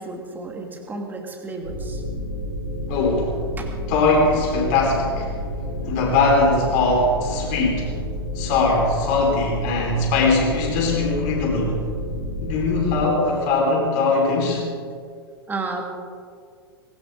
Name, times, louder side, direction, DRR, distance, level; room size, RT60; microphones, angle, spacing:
voice 1, 0.0-2.0 3.6-3.7 15.5-15.9, right 3 dB, 15° right, 1 dB, 2.6 m, -32 dB
sound 1, 1.6-13.0, equal, 90° left, 5.6 m, -30 dB
voice 2, 2.9-3.3 3.9-5.3 5.9-7.9 8.3-11.8 12.4-14.6, left 3 dB, 45° left, -1 dB, 4.7 m, -20 dB
19.5 x 17.5 x 3.9 m, 2.1 s
figure-of-eight pair, 95°, 13 cm